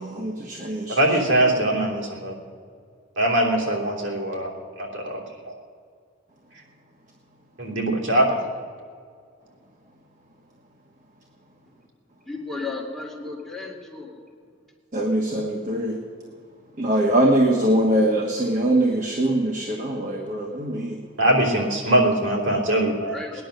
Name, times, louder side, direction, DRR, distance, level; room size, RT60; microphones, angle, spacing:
voice 1, 0.0-1.2 14.9-16.0 16.8-21.0, right 1 dB, 40° right, 1 dB, 1.3 m, -22 dB
voice 2, 0.9-2.3 3.2-4.5 4.8-5.5 7.6-8.4 21.2-23.1, right 1 dB, 75° right, -1 dB, 3.2 m, -22 dB
voice 3, 12.3-14.2 23.1-23.4, left 3 dB, ahead, -4 dB, 2.4 m, -34 dB
19.0 x 10.5 x 6.6 m, 2.1 s
head